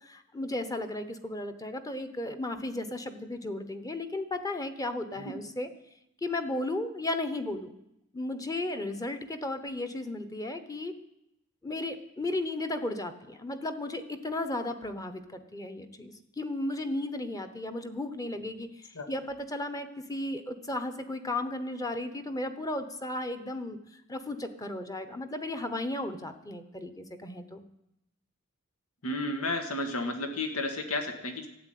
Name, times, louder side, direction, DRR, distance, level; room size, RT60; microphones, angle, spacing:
voice 1, 0.0-5.7 6.2-7.7 8.1-10.9 11.6-27.6, left 2 dB, 15° left, 9 dB, 1.0 m, -35 dB
voice 2, 29.0-31.5, left 2 dB, 85° left, 5 dB, 1.8 m, -32 dB
13.0 x 8.3 x 9.3 m, 0.83 s
head